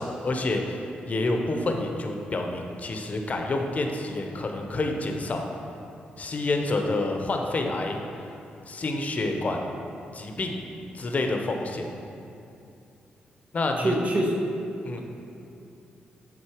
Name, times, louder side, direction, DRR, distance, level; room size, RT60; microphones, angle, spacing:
voice 1, 0.0-5.5 6.2-8.3 8.7-9.7 10.1-10.6 10.9-11.9 13.5-13.9 14.8-15.0, left 2 dB, 45° left, 3 dB, 0.8 m, -28 dB
voice 2, 13.8-14.4, right 1 dB, 45° right, 0 dB, 1.0 m, -25 dB
7.5 x 3.9 x 5.0 m, 2.7 s
cardioid pair, 75°, 4 cm